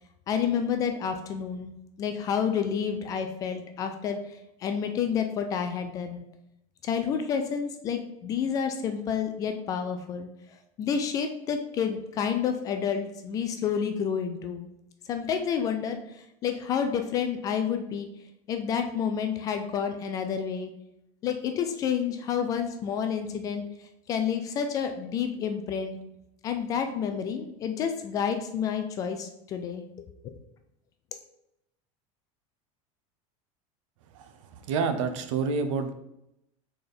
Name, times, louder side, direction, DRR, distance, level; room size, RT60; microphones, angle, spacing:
voice 1, 0.3-6.3 6.8-14.7 15.1-18.1 18.5-20.7 21.2-26.0 26.4-30.3, left 7 dB, 20° left, 6 dB, 0.3 m, -30 dB
voice 2, 34.1-35.9, right 5 dB, 65° right, 8 dB, 0.8 m, -29 dB
4.3 x 4.3 x 5.0 m, 0.83 s
supercardioid pair, 180°, 17 cm